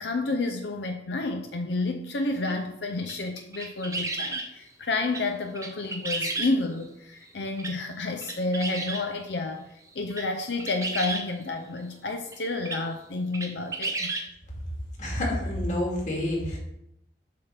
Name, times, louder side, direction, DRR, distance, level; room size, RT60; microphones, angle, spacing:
voice 1, 0.0-9.7 9.9-14.1, left 2 dB, 80° left, 5 dB, 0.6 m, -30 dB
sound 1, 2.5-2.6 3.0-4.5 5.1-5.2 5.6-6.8 7.6-7.7 8.2-9.0 9.9-10.3 10.6-11.3 12.3-12.4 12.7-12.8 13.3-14.3, right 3 dB, 20° right, 0.7 m, -32 dB
voice 2, 15.0-16.6, left 1 dB, 45° left, -3 dB, 2.2 m, -28 dB
7.5 x 3.5 x 5.7 m, 0.80 s
head